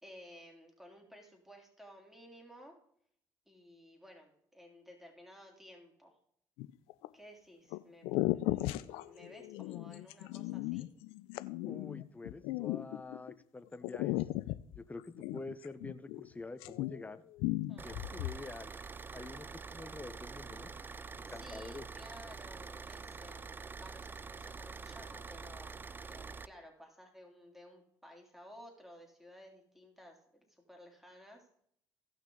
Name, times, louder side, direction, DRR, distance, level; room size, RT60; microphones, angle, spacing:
voice 1, 0.0-2.8 3.5-6.1 7.1-8.1 8.3-10.9 17.7-17.9 21.3-23.4 23.8-31.6, equal, 5° right, 1 dB, 3.3 m, -55 dB
sound 1, 6.6-7.1 7.7-13.3 13.8-16.3 16.5-17.1 17.4-18.4, left 18 dB, 80° left, 0.5 m, -36 dB
voice 2, 11.6-14.2 14.8-17.2 17.8-18.7 19.1-20.7 21.1-21.9, left 3 dB, 15° left, 11 dB, 0.9 m, -47 dB
Car / Idling, 17.8-26.5, right 4 dB, 20° right, 0.4 m, -46 dB
16.5 x 6.0 x 3.9 m, 0.67 s
supercardioid pair, 75°, 10 cm